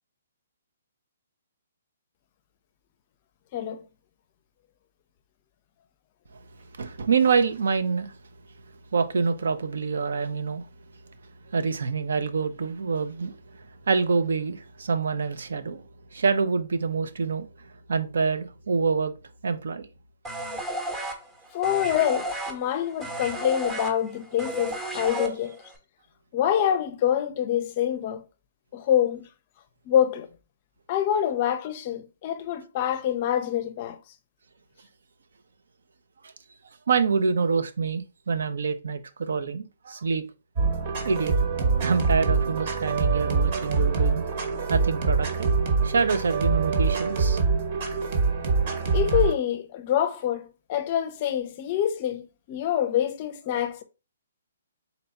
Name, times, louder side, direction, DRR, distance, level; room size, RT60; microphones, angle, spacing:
voice 1, 3.5-3.8 21.5-25.5 26.3-28.2 28.7-29.3 29.9-30.3 30.9-34.0 48.9-53.8, left 10 dB, 35° left, 0.5 m, -26 dB
voice 2, 6.8-8.1 8.9-10.6 11.5-15.8 16.1-17.5 17.9-19.1 19.4-19.9 36.9-40.2 41.0-41.3 41.8-44.2 44.7-45.5 45.8-47.4, right 5 dB, 75° right, 0.6 m, -26 dB
sound 1, 20.2-25.7, right 1 dB, 10° right, 0.8 m, -33 dB
sound 2, 40.6-49.3, right 4 dB, 45° right, 1.0 m, -24 dB
4.0 x 2.3 x 4.1 m
hypercardioid pair, 155°, 0 cm